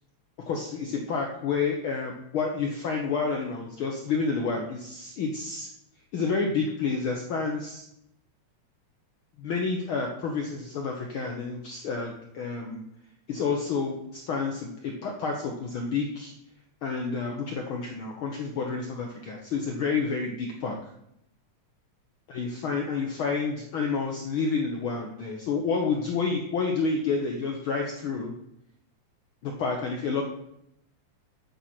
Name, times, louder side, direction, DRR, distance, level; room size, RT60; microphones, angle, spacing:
voice 1, 0.5-5.7 6.1-7.8 9.4-12.8 13.3-16.3 16.8-20.9 22.3-28.3 29.4-30.3, left 4 dB, 70° left, 1 dB, 1.2 m, -29 dB
8.7 x 7.0 x 4.3 m, 0.79 s
omnidirectional pair, 3.4 m